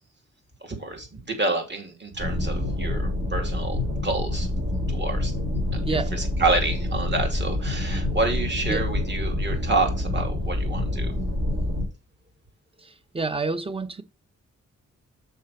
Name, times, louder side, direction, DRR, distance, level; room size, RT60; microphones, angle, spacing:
voice 1, 0.6-4.5 4.9-5.3 5.7-11.1, right 3 dB, 35° right, 2.7 m, -28 dB
sound 1, 2.2-11.8, left 1 dB, 55° right, 3.6 m, -27 dB
voice 2, 5.8-6.1 8.7-8.9 12.8-14.0, right 3 dB, 20° right, 0.7 m, -28 dB
6.4 x 5.7 x 4.3 m
wide cardioid pair, 130°, 30 cm